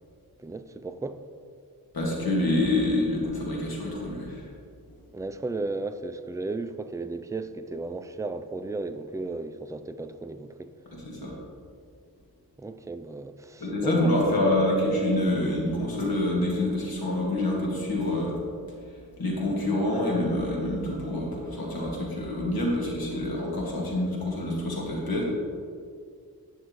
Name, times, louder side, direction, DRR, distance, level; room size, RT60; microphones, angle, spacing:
voice 1, 0.4-1.2 5.1-10.7 12.6-14.5, right 3 dB, 10° right, 9 dB, 0.4 m, -34 dB
voice 2, 1.9-4.5 10.9-11.4 13.6-18.4 18.7-18.8 19.2-25.2, left 1 dB, 65° left, -3 dB, 2.1 m, -27 dB
10.0 x 6.3 x 3.1 m, 2.2 s
cardioid pair, 50°, 38 cm